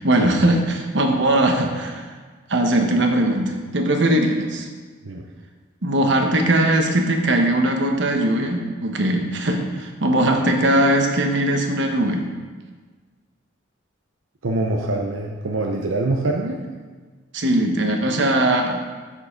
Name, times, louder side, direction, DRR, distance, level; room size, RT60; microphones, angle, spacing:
voice 1, 0.0-2.0 2.5-4.7 5.8-12.2 17.3-18.8, right 1 dB, 60° right, 3 dB, 1.1 m, -20 dB
voice 2, 14.4-16.6, right 2 dB, 85° right, 1 dB, 0.7 m, -24 dB
7.4 x 6.5 x 5.1 m, 1.4 s
head